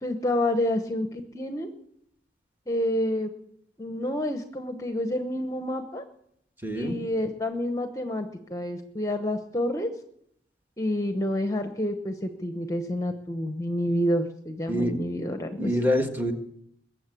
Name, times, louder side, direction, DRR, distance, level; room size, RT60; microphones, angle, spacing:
voice 1, 0.0-1.7 2.7-3.3 3.8-6.0 6.7-9.9 10.8-15.7, left 1 dB, 20° left, 7 dB, 0.9 m, -28 dB
voice 2, 6.6-7.0 14.7-14.9 15.6-16.3, equal, 10° right, 4 dB, 1.6 m, -26 dB
21.5 x 7.6 x 8.4 m, 0.73 s
head